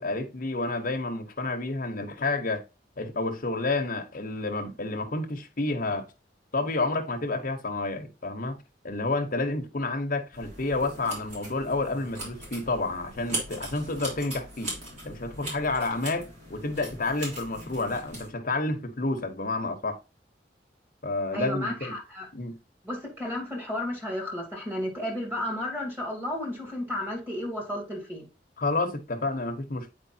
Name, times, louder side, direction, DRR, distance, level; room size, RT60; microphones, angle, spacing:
voice 1, 0.0-2.6 3.0-6.1 6.5-8.6 8.8-14.7 15.0-20.0 21.0-21.9 22.3-22.5 28.6-29.9, left 2 dB, 50° left, 1.0 m, -30 dB
sound 1, 10.3-18.3, right 1 dB, 40° right, 3.6 m, -40 dB
voice 2, 21.3-22.3 22.8-28.3, left 1 dB, 10° right, 2.7 m, -33 dB
8.4 x 4.9 x 2.8 m
head